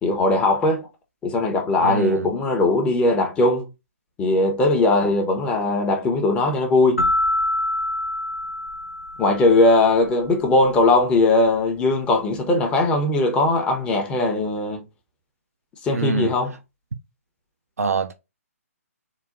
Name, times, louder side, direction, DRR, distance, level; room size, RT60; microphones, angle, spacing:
voice 1, 0.0-0.9 1.2-3.6 4.2-7.1 9.2-14.8 15.8-16.6, left 2 dB, 10° left, 0.7 m, -19 dB
voice 2, 1.8-2.3 15.9-16.3 17.8-18.1, right 5 dB, 70° right, 0.4 m, -24 dB
sound 1, 7.0-9.7, left 1 dB, 65° left, 1.1 m, -25 dB
3.9 x 2.2 x 3.7 m
figure-of-eight pair, 135°, 8 cm